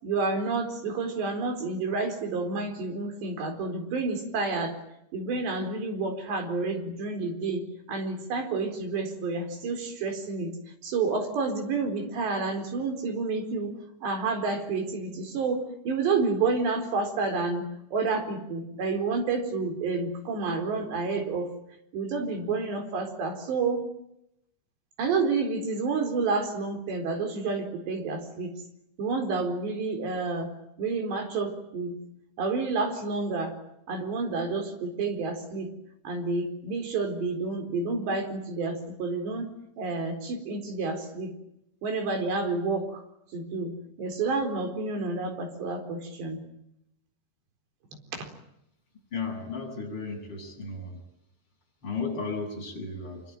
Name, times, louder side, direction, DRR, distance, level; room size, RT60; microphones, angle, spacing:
voice 1, 0.0-4.7 5.1-10.5 10.8-13.7 14.0-21.5 21.9-23.8 25.0-28.5 29.0-30.5 30.8-31.9 32.4-33.5 33.9-35.7 36.0-39.5 39.8-41.3 41.8-43.0 43.3-43.7 44.0-46.4 48.1-48.3, right 4 dB, 70° right, 5 dB, 6.3 m, -29 dB
voice 2, 49.1-51.0 51.8-53.2, left 4 dB, 25° left, 0 dB, 8.5 m, -34 dB
26.0 x 24.0 x 9.1 m, 0.79 s
omnidirectional pair, 5.2 m